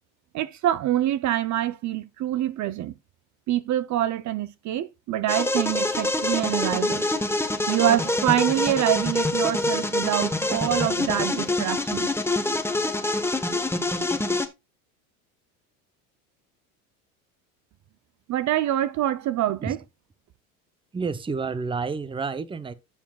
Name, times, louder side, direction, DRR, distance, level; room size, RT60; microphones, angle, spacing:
voice 1, 0.3-2.9 3.5-7.1 7.7-12.1 18.3-19.8, right 12 dB, 45° right, 0.7 m, -25 dB
sound 1, 5.3-14.5, left 2 dB, 5° left, 1.2 m, -25 dB
voice 2, 20.9-22.7, right 4 dB, 10° right, 0.8 m, -29 dB
12.5 x 7.1 x 2.4 m
hypercardioid pair, 90°, 42 cm